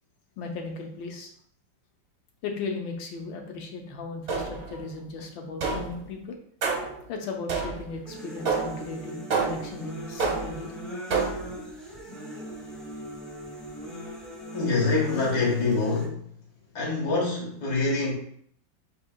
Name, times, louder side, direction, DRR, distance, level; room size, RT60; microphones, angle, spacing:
voice 1, 0.4-1.3 2.4-6.4 7.1-10.7, left 3 dB, 80° left, 2 dB, 1.5 m, -36 dB
sound 1, 4.3-4.8 5.6-6.0 6.6-7.0 7.5-8.0 8.5-8.9 9.3-9.8 10.2-10.7 11.1-11.6, right 4 dB, 50° right, 0.9 m, -28 dB
sound 2, 8.1-16.0, equal, ahead, 0.8 m, -39 dB
voice 2, 14.5-16.3 16.7-18.1, left 3 dB, 60° left, -4 dB, 2.0 m, -25 dB
8.0 x 2.9 x 2.2 m, 0.64 s
omnidirectional pair, 2.0 m